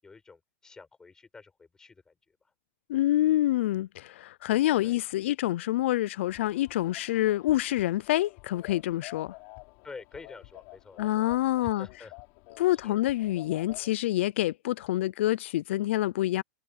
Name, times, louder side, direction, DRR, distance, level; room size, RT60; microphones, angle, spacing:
voice 1, 0.0-2.1 4.8-5.0 9.8-11.3 11.6-12.1 12.8-13.0, left 4 dB, 10° left, 7.1 m, -48 dB
voice 2, 2.9-9.3 11.0-11.9 12.6-16.4, left 15 dB, 65° left, 0.5 m, -27 dB
sound 1, 6.2-13.9, left 27 dB, 40° left, 4.7 m, -50 dB
supercardioid pair, 165°, 7 cm